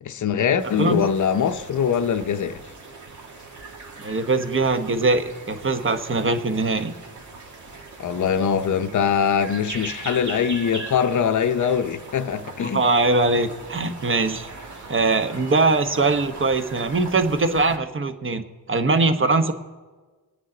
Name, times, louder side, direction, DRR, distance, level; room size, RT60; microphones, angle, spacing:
voice 1, 0.0-2.6 8.0-12.8, left 7 dB, 50° left, 0.7 m, -22 dB
sound 1, 0.6-17.8, right 3 dB, 50° right, 1.8 m, -40 dB
voice 2, 4.0-6.9 12.6-14.5 14.9-19.5, right 3 dB, 30° right, 1.1 m, -21 dB
23.5 x 9.4 x 3.9 m
cardioid pair, 80°, 38 cm